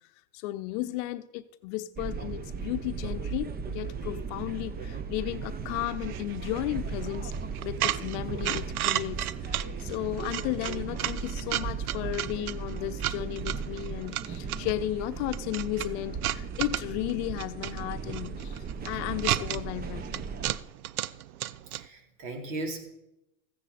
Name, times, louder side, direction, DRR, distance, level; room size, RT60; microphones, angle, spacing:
voice 1, 0.3-7.3 7.6-20.2, left 15 dB, 55° left, 0.8 m, -34 dB
sound 1, 2.0-20.6, right 5 dB, 20° right, 0.9 m, -37 dB
sound 2, 5.6-21.9, right 14 dB, 80° right, 0.6 m, -35 dB
voice 2, 21.7-22.8, right 2 dB, 60° right, 3.7 m, -36 dB
15.0 x 9.8 x 4.3 m
hypercardioid pair, 110°, 43 cm